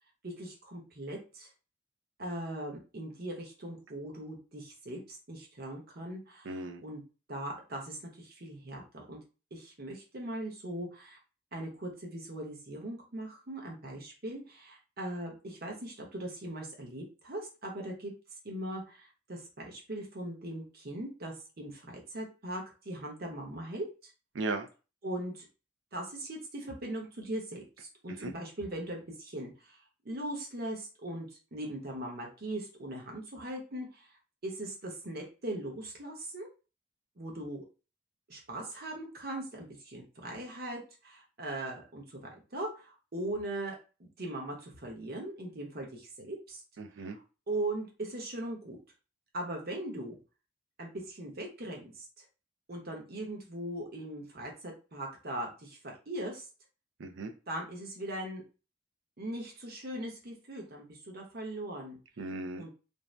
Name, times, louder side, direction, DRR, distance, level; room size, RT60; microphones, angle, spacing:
voice 1, 0.2-1.5 2.2-7.0 7.3-9.2 9.5-11.2 11.5-18.1 18.4-24.1 25.0-25.5 25.9-34.1 34.4-36.5 37.2-37.7 38.3-46.6 47.0-47.2 47.5-48.8 49.3-50.2 50.8-52.2 52.7-56.5 57.5-58.4 59.2-62.0 62.6-62.7, right 1 dB, 50° right, 0 dB, 0.9 m, -40 dB
voice 2, 6.5-6.8 24.3-24.7 28.2-28.3 46.8-47.2 57.0-57.3 62.2-62.7, right 2 dB, 75° right, 7 dB, 0.5 m, -36 dB
2.6 x 2.1 x 3.2 m, 0.33 s
head